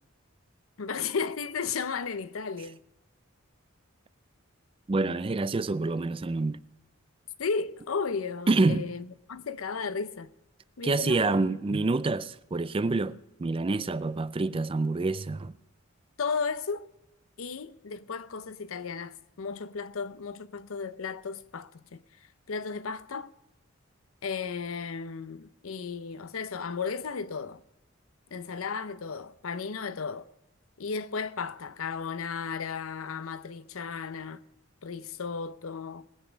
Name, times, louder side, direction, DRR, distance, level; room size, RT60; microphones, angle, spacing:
voice 1, 0.8-2.8 7.4-10.3 10.8-11.6 16.2-16.9 17.4-23.3 24.2-27.6 28.3-30.3 30.8-34.4 34.8-36.1, left 5 dB, 90° left, 0.7 m, -34 dB
voice 2, 4.9-6.6 8.5-8.9 10.8-15.5, right 3 dB, 25° right, 0.4 m, -27 dB
19.5 x 8.2 x 5.1 m
head